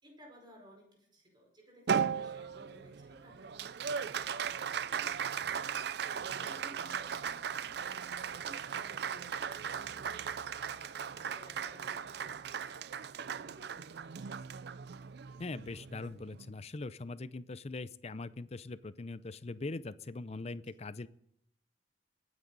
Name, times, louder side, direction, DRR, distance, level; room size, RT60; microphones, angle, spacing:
voice 1, 0.0-14.3, equal, 25° right, 1 dB, 4.7 m, -58 dB
Applause, 1.9-16.5, right 7 dB, 60° right, 0.4 m, -37 dB
voice 2, 15.4-21.1, left 3 dB, 35° left, 16 dB, 0.5 m, -41 dB
23.5 x 9.6 x 4.0 m, 0.72 s
head